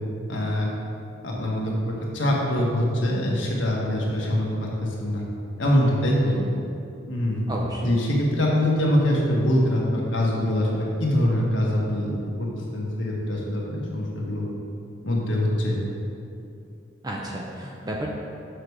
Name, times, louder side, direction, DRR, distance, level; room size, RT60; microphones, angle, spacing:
voice 1, 0.3-0.7 1.2-5.2 5.6-6.3 7.1-7.4 7.8-12.1 12.4-14.4 15.0-15.8, left 1 dB, 75° left, -3 dB, 1.6 m, -24 dB
voice 2, 6.2-6.6 7.5-8.0 17.0-18.1, right 1 dB, 20° right, -2 dB, 0.7 m, -32 dB
6.8 x 6.5 x 4.8 m, 2.7 s
head